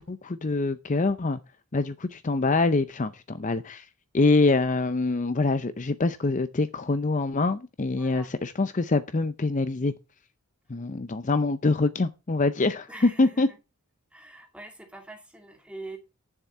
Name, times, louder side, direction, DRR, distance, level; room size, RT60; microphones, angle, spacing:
voice 1, 0.0-1.4 1.7-3.9 4.1-9.9 10.7-13.5, left 3 dB, 35° left, 0.6 m, -25 dB
voice 2, 8.0-8.3 12.9-13.6 14.1-16.0, right 2 dB, 5° right, 2.3 m, -43 dB
9.8 x 7.3 x 5.6 m
head